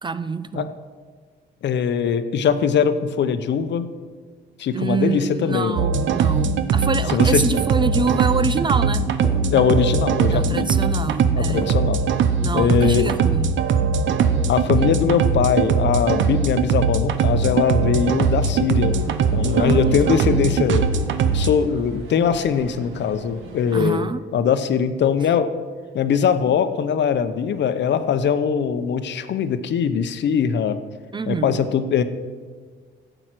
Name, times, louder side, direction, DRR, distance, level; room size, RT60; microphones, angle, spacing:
voice 1, 0.0-0.7 4.7-9.1 10.3-11.8 12.4-13.5 19.6-20.6 23.7-24.2 31.1-31.6, right 4 dB, 25° right, 14 dB, 0.4 m, -26 dB
voice 2, 1.6-3.9 4.6-5.9 7.1-7.4 9.5-10.7 11.4-12.0 12.5-13.0 14.5-19.0 19.3-20.9 21.3-25.6 25.9-30.8 31.3-32.0, left 7 dB, 65° left, 10 dB, 0.8 m, -21 dB
sound 1, 5.8-21.5, right 5 dB, 70° right, 0.8 m, -20 dB
sound 2, 8.0-8.8 9.2-9.8 10.4-10.8 11.6-12.0 12.9-13.3 13.8-14.4 14.7-14.8, equal, 10° left, 3.1 m, -37 dB
sound 3, 18.8-23.9, right 3 dB, 90° right, 1.7 m, -40 dB
11.0 x 7.9 x 6.0 m, 1.5 s
cardioid pair, 90°, 20 cm